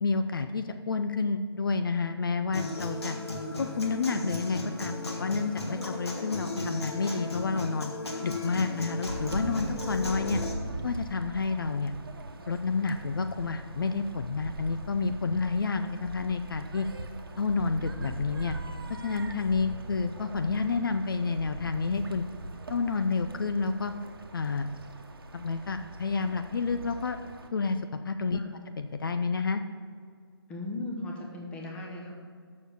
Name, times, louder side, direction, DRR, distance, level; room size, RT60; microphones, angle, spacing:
voice 1, 0.0-3.2 3.6-7.9 8.2-10.4 10.8-11.9 12.5-16.9 17.4-18.6 19.0-22.2 22.7-23.9 24.3-24.7 25.3-27.2 27.5-28.4 28.8-29.6, left 4 dB, 55° left, 8 dB, 0.5 m, -29 dB
Human voice / Acoustic guitar, 2.5-10.5, left 2 dB, 80° left, 1.9 m, -35 dB
sound 1, 9.0-27.5, right 2 dB, 60° right, 1.1 m, -41 dB
voice 2, 30.5-32.1, left 2 dB, 10° left, -1 dB, 0.9 m, -37 dB
6.9 x 6.4 x 6.8 m, 2.1 s
figure-of-eight pair, 155°, 14 cm